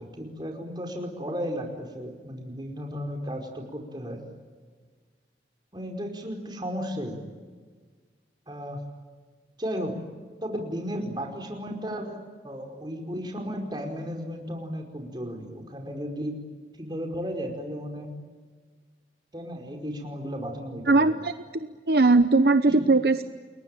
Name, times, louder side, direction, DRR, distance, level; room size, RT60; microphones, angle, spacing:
voice 1, 0.0-4.2 5.7-7.2 8.5-8.8 9.6-9.9 10.4-16.4 16.8-18.1 19.3-21.0 22.7-22.8, equal, 25° right, 3 dB, 5.0 m, -34 dB
voice 2, 20.9-23.2, right 3 dB, 60° right, 10 dB, 0.9 m, -20 dB
30.0 x 22.0 x 9.1 m, 1.5 s
head